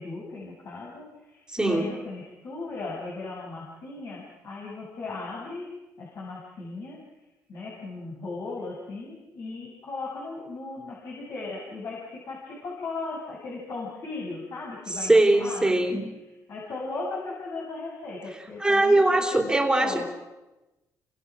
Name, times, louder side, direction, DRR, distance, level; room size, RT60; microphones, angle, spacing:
voice 1, 0.0-5.7 6.0-7.0 7.5-16.0 16.5-20.1, left 3 dB, 55° left, -4 dB, 7.1 m, -37 dB
voice 2, 1.5-1.9 14.9-16.1 18.6-20.0, right 2 dB, 10° right, 4 dB, 3.4 m, -21 dB
29.5 x 24.5 x 6.2 m, 1.1 s
cardioid pair, 120°, 7 cm